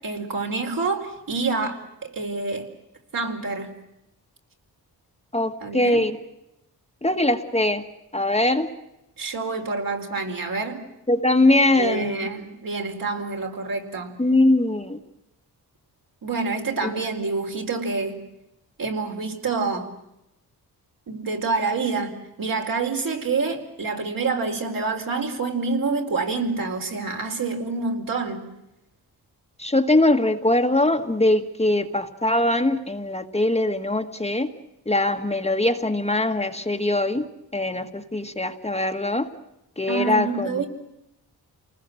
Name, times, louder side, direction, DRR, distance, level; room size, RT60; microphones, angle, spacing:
voice 1, 0.0-2.7 3.1-3.7 5.6-6.0 9.2-10.8 11.8-14.1 16.2-18.2 18.8-19.9 21.1-28.5 39.9-40.7, right 4 dB, 60° right, 2 dB, 4.3 m, -27 dB
voice 2, 5.3-6.2 7.0-7.8 8.1-8.7 11.1-12.2 14.2-15.0 16.8-16.9 29.6-34.5 34.8-37.2 37.5-39.3 39.8-40.6, left 1 dB, 15° left, 4 dB, 1.7 m, -22 dB
29.0 x 20.0 x 7.8 m, 0.88 s
cardioid pair, 85°, 39 cm